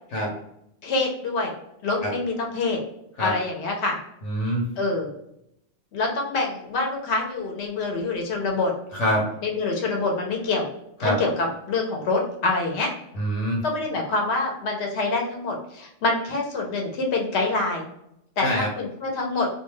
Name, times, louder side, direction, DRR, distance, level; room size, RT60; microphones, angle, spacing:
voice 1, 0.8-1.5 1.8-2.8 3.2-4.0 4.8-5.1 5.9-8.7 9.4-10.7 11.0-12.9 13.6-17.9 18.4-19.5, left 3 dB, 65° left, 1 dB, 1.0 m, -26 dB
voice 2, 4.2-4.6 8.9-9.2 11.0-11.2 13.1-13.6 18.4-18.7, equal, 80° left, -2 dB, 1.2 m, -24 dB
2.4 x 2.3 x 3.1 m, 0.77 s
omnidirectional pair, 1.3 m